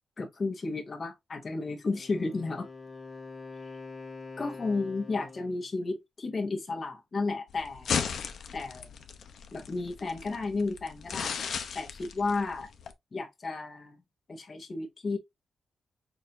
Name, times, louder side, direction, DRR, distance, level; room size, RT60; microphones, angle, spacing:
voice 1, 0.2-2.7 4.4-7.9 8.5-8.9 9.5-11.4 11.7-12.7 13.1-14.0 14.3-15.2, left 3 dB, 40° left, 1.2 m, -33 dB
Wind instrument woodwind instrument, 1.8-5.7, left 4 dB, 25° left, 2.0 m, -45 dB
sound 1, 7.5-12.9, left 6 dB, 75° left, 0.7 m, -36 dB
6.5 x 2.6 x 3.0 m
wide cardioid pair, 125°, 0 cm